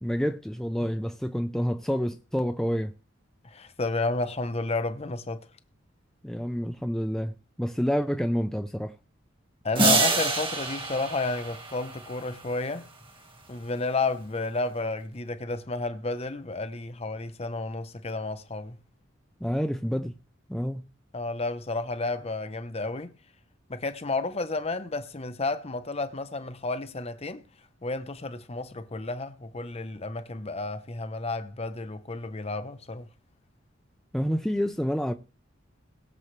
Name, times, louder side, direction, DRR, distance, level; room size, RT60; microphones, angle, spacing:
voice 1, 0.0-2.9 6.2-8.9 19.4-20.1 20.5-20.8 34.1-35.1, equal, 5° left, 0.6 m, -28 dB
voice 2, 3.4-5.5 9.6-12.9 13.5-18.8 21.1-23.1 23.7-27.4 27.8-33.1, left 3 dB, 30° left, 0.9 m, -31 dB
sound 1, 9.8-12.5, right 3 dB, 25° right, 1.9 m, -26 dB
21.5 x 7.2 x 3.3 m
head